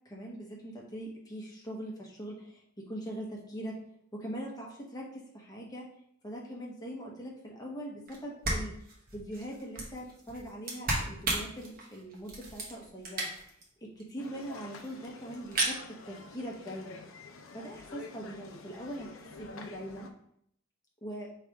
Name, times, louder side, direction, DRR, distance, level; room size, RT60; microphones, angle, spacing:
voice 1, 0.0-3.8 4.1-5.9 6.2-8.7 9.1-13.3 13.8-17.0 17.5-20.1 21.0-21.3, equal, 20° left, -3 dB, 1.1 m, -42 dB
sound 1, 8.1-8.2 8.4-13.6 14.0-14.1 14.3-14.4 14.5-15.0 15.3-15.8, right 2 dB, 45° right, 1.2 m, -34 dB
sound 2, 14.2-20.1, left 3 dB, 70° left, 0.5 m, -48 dB
3.3 x 3.3 x 4.7 m, 0.69 s
head